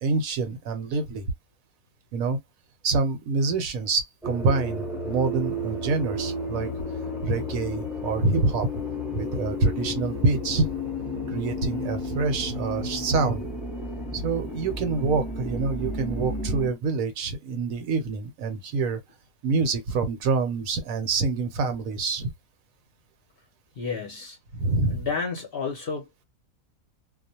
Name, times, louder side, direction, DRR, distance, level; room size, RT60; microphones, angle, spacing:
voice 1, 0.0-1.3 2.1-2.4 2.8-6.7 7.2-8.7 9.1-10.7 11.3-13.4 14.1-19.0 19.4-22.3 24.5-25.1, right 3 dB, 75° right, 1.1 m, -26 dB
sound 1, 4.2-16.7, left 1 dB, ahead, 0.7 m, -32 dB
voice 2, 23.8-24.4 24.9-26.2, left 5 dB, 50° left, 0.8 m, -31 dB
2.4 x 2.1 x 2.7 m
omnidirectional pair, 1.5 m